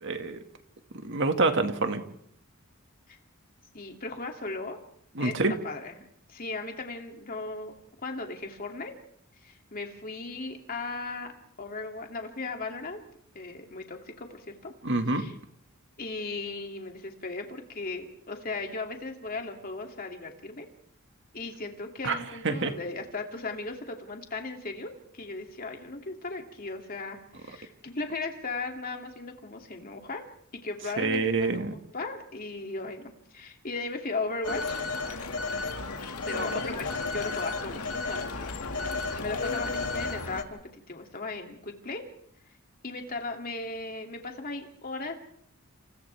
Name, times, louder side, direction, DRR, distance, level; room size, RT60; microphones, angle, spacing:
voice 1, 0.0-0.4 1.0-2.0 5.2-5.5 14.8-15.2 22.0-22.2 22.4-22.7 31.0-31.7, right 3 dB, 55° right, 6 dB, 2.0 m, -26 dB
voice 2, 3.7-4.8 5.2-6.0 6.3-7.7 8.0-9.0 9.4-11.3 11.6-13.0 13.3-14.7 15.1-15.4 16.0-20.7 21.3-30.2 30.6-31.5 31.9-35.0 36.3-40.6 40.9-42.1 42.8-45.2, left 3 dB, 40° left, 3 dB, 2.8 m, -37 dB
Telephone, 34.4-40.4, left 3 dB, 85° left, 2.2 m, -33 dB
28.5 x 28.5 x 3.5 m, 0.70 s
head